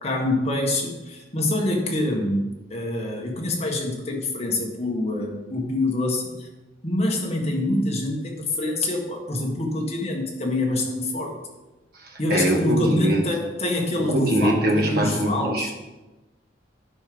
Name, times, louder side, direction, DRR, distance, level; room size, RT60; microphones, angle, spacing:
voice 1, 0.0-6.5 6.8-11.4 12.2-15.7, left 1 dB, 35° left, 0 dB, 1.7 m, -26 dB
voice 2, 12.0-13.2 14.0-15.7, right 1 dB, 55° right, 2 dB, 1.6 m, -23 dB
9.6 x 5.5 x 5.2 m, 1.1 s
head